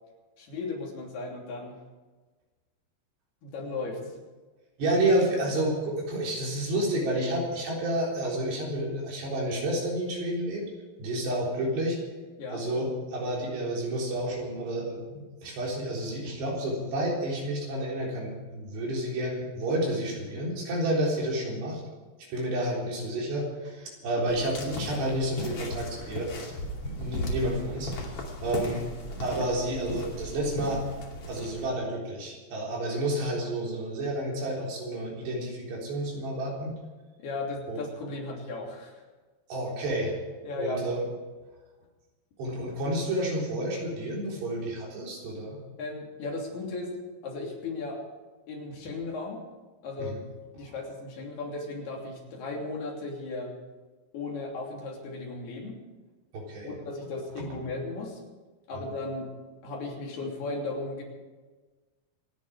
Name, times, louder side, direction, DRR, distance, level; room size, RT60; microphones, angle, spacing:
voice 1, 0.4-1.8 3.4-4.0 12.4-12.7 24.1-24.3 37.2-39.0 40.4-40.8 45.8-46.9 47.2-48.0 48.5-49.4 49.8-50.2 50.5-53.5 54.1-55.8 56.6-58.2 58.7-59.3 59.6-61.0, left 3 dB, 70° left, -1 dB, 5.0 m, -36 dB
voice 2, 4.8-10.7 11.0-12.0 12.5-21.8 22.3-26.3 26.8-27.9 28.4-28.8 29.2-30.8 31.3-36.8 37.7-37.8 39.5-40.2 40.6-41.0 42.4-45.6 50.0-50.2 50.6-50.7 56.3-56.7, right 1 dB, 80° right, -2 dB, 6.0 m, -30 dB
sound 1, 24.3-31.7, left 1 dB, 40° left, 3.0 m, -36 dB
27.0 x 10.5 x 5.0 m, 1.3 s
omnidirectional pair, 4.8 m